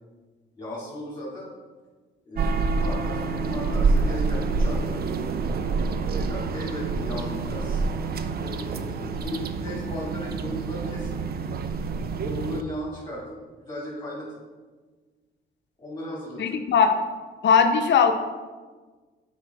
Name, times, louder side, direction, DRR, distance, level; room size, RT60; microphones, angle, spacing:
voice 1, 0.6-1.5 2.2-5.0 6.0-7.8 8.3-11.2 12.1-14.3 15.8-16.4, equal, 25° left, -7 dB, 2.2 m, -36 dB
sound 1, 2.4-12.6, right 4 dB, 50° right, 0.5 m, -27 dB
voice 2, 16.4-16.9 17.4-18.1, left 6 dB, 65° left, 5 dB, 0.7 m, -19 dB
7.0 x 5.2 x 4.1 m, 1.4 s
cardioid pair, 90°, 20 cm